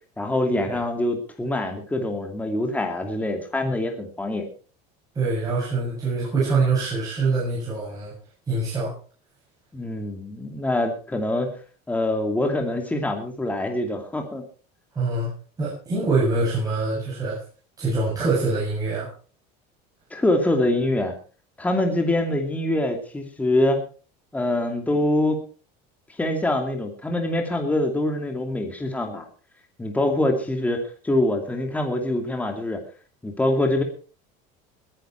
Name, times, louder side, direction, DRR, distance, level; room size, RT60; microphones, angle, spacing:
voice 1, 0.2-4.5 9.7-11.5 11.9-14.4 20.1-21.1 21.6-23.8 24.3-25.4 26.2-29.2 29.8-32.8 33.2-33.8, left 1 dB, 5° left, 4 dB, 2.5 m, -24 dB
voice 2, 5.1-8.1 8.5-8.9 15.0-15.3 15.6-17.4 17.8-19.1, right 3 dB, 20° right, -6 dB, 7.6 m, -24 dB
20.5 x 10.0 x 4.5 m, 0.38 s
cardioid pair, 150°, 19 cm